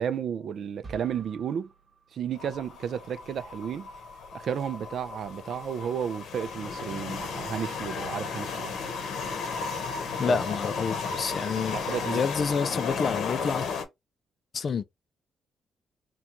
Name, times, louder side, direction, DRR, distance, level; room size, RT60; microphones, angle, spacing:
voice 1, 0.0-1.7 2.1-3.9 4.3-8.7 10.3-10.4 11.7-12.2, right 8 dB, 65° right, 0.3 m, -32 dB
sound 1, 0.8-2.9, right 4 dB, 30° right, 0.9 m, -50 dB
sound 2, 2.4-13.8, left 5 dB, 80° left, 0.7 m, -34 dB
voice 2, 10.2-13.7 14.5-14.8, left 5 dB, 45° left, 0.3 m, -29 dB
2.9 x 2.2 x 3.6 m
cardioid pair, 120°, 0 cm